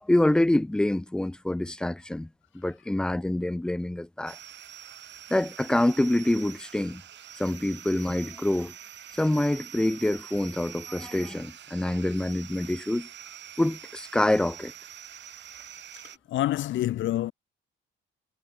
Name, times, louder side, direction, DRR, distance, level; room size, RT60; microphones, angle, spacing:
voice 1, 0.0-2.3 2.5-4.4 5.3-7.0 7.4-8.7 9.1-13.1 13.6-14.7, left 1 dB, 5° left, 0.3 m, -26 dB
sound 1, 4.3-16.2, right 10 dB, 65° right, 2.1 m, -45 dB
voice 2, 16.3-17.3, left 14 dB, 75° left, 0.7 m, -27 dB
cardioid pair, 90°, 20 cm